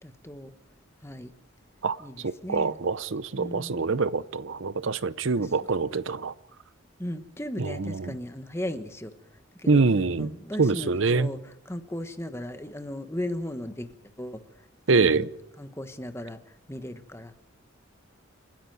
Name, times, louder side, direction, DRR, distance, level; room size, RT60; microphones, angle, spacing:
voice 1, 0.0-0.5 1.0-1.3 2.0-2.2 2.4-2.8 3.4-3.9 5.4-5.5 7.0-9.1 9.5-9.8 10.2-14.7 14.9-15.3 15.6-17.3, left 1 dB, 10° left, 1.2 m, -36 dB
voice 2, 2.2-6.3 7.6-8.1 9.7-10.3 10.6-11.3 14.9-15.3, right 4 dB, 65° right, 0.7 m, -25 dB
29.0 x 10.0 x 9.2 m
head